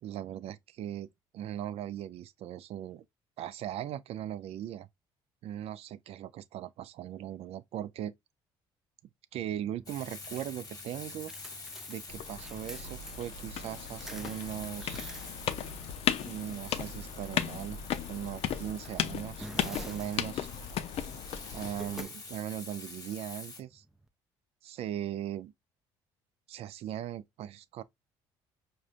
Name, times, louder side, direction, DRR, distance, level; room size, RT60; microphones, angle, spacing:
voice 1, 0.0-1.1 1.3-3.1 3.4-4.9 5.4-8.1 9.3-11.3 11.9-15.1 16.2-17.8 18.1-20.5 21.5-23.8 24.6-25.5 26.5-27.8, right 11 dB, 60° right, 0.4 m, -39 dB
sound 1, 9.4-24.1, right 1 dB, 5° right, 0.5 m, -51 dB
Frying (food), 9.9-23.6, left 4 dB, 30° left, 1.1 m, -47 dB
sound 2, 12.1-22.0, left 9 dB, 60° left, 0.5 m, -36 dB
4.9 x 2.2 x 2.5 m
supercardioid pair, 70°, 11 cm